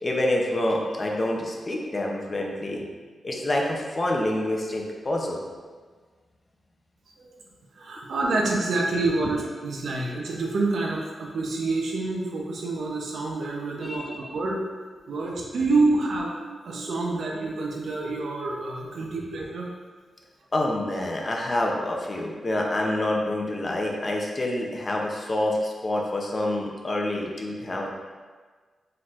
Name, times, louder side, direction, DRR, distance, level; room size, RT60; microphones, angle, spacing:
voice 1, 0.0-2.8 3.2-5.4 9.2-9.3 13.7-14.2 15.5-15.6 20.5-27.9, left 1 dB, 30° left, -1 dB, 0.6 m, -27 dB
voice 2, 7.7-14.6 15.1-19.7, right 3 dB, 70° right, -1 dB, 0.7 m, -27 dB
4.3 x 3.8 x 2.5 m, 1.5 s
wide cardioid pair, 115°, 0 cm